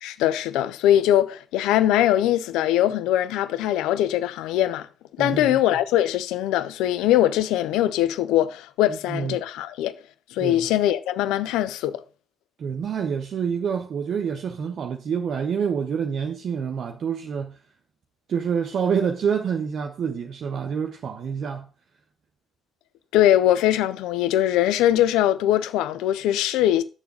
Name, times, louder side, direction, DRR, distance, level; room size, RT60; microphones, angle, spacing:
voice 1, 0.0-4.9 5.2-9.9 10.3-12.0 23.1-26.8, left 12 dB, 65° left, 0.7 m, -21 dB
voice 2, 5.2-5.6 8.9-9.4 10.4-10.7 12.6-17.6 18.3-21.7, right 7 dB, 50° right, 0.9 m, -27 dB
7.9 x 7.0 x 6.4 m
figure-of-eight pair, 45°, 0 cm